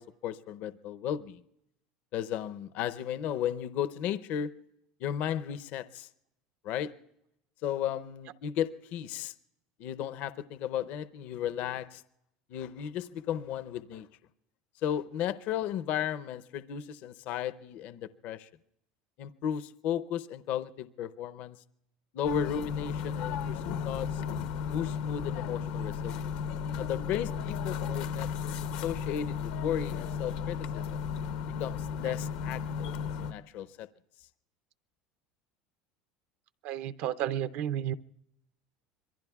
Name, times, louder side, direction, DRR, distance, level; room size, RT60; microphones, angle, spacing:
voice 1, 0.0-1.4 2.1-4.5 5.0-6.1 6.6-6.9 7.6-9.3 9.8-12.0 12.5-14.1 14.8-18.5 19.2-21.6 22.1-24.2 24.7-26.3 26.8-28.5 28.8-31.0 31.6-32.9 33.2-33.9, left 9 dB, 55° left, 0.6 m, -34 dB
sound 1, 22.2-33.3, left 7 dB, 80° left, 1.0 m, -34 dB
voice 2, 36.6-37.9, right 11 dB, 60° right, 0.5 m, -32 dB
26.5 x 22.5 x 2.3 m
supercardioid pair, 140°, 3 cm